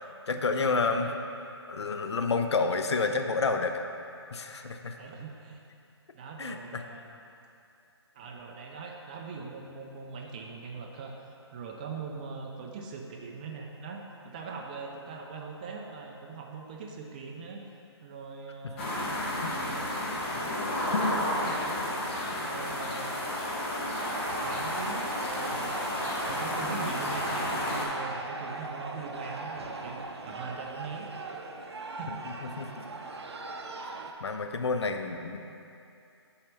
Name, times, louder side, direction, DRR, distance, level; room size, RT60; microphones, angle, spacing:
voice 1, 0.3-1.1 1.7-3.7 4.3-5.0 6.4-6.8 19.4-19.5 20.9-21.1 32.6-32.7 34.2-35.4, left 4 dB, 70° left, 6 dB, 0.6 m, -29 dB
voice 2, 0.9-1.2 1.7-1.9 4.5-4.6 5.0-5.6 6.1-7.2 8.1-17.6 18.0-18.9 19.3-20.0 21.2-22.0 22.4-23.1 24.4-25.8 26.1-31.1 31.9-32.2, right 4 dB, 20° right, 1 dB, 0.3 m, -42 dB
sound 1, 18.8-27.8, left 1 dB, 30° left, 1.0 m, -32 dB
sound 2, 24.0-34.1, right 3 dB, 65° right, 0.6 m, -39 dB
5.6 x 4.3 x 5.3 m, 2.6 s
figure-of-eight pair, 145°, 15 cm